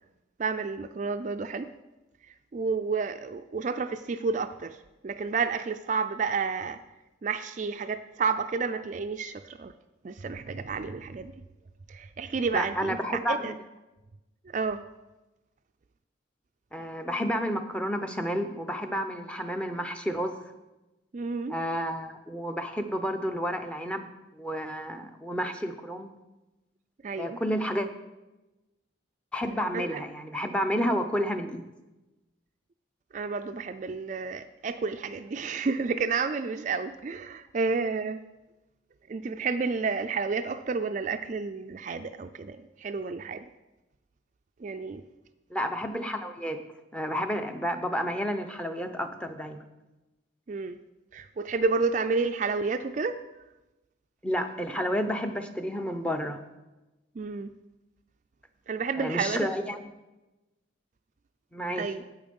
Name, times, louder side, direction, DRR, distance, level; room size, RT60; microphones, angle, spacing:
voice 1, 0.4-1.7 2.2-4.8 5.0-6.8 7.2-9.7 10.0-11.3 11.9-13.0 13.3-13.5 14.5-14.8 21.1-21.6 27.0-27.4 29.7-30.0 33.1-38.2 39.1-43.5 44.6-45.0 50.5-50.8 51.1-53.2 57.2-57.5 58.7-59.5 61.8-62.0, right 4 dB, 40° right, 9 dB, 0.3 m, -30 dB
voice 2, 12.5-13.5 16.7-20.4 21.5-24.1 24.3-26.1 27.2-27.9 29.3-31.6 45.5-46.6 46.9-49.6 54.2-56.4 59.0-59.9 61.5-61.8, equal, 5° left, 7 dB, 0.6 m, -30 dB
8.9 x 8.4 x 5.3 m, 1.0 s
head